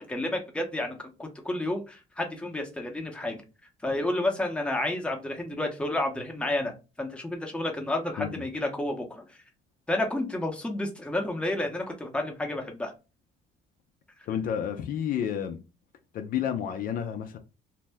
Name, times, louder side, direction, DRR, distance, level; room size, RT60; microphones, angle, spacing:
voice 1, 0.0-3.4 3.8-9.4 9.9-12.9, left 1 dB, 5° left, 0.7 m, -31 dB
voice 2, 14.3-15.6 16.1-17.4, left 9 dB, 55° left, 0.4 m, -30 dB
2.6 x 2.1 x 3.3 m
cardioid pair, 110°, 17 cm